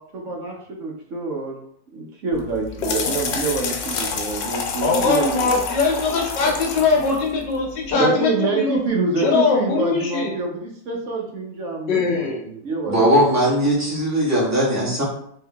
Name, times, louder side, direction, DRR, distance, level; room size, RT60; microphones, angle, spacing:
voice 1, 0.1-1.6 1.9-5.6 7.9-13.2, right 3 dB, 55° right, -1 dB, 1.0 m, -26 dB
sound 1, 2.3-7.9, left 4 dB, 90° left, 1.4 m, -28 dB
voice 2, 4.8-8.8 9.2-10.4 11.9-12.5, left 4 dB, 75° left, 0 dB, 1.4 m, -21 dB
voice 3, 12.9-15.0, equal, 10° right, -6 dB, 1.3 m, -19 dB
3.7 x 3.2 x 3.4 m, 0.66 s
omnidirectional pair, 2.0 m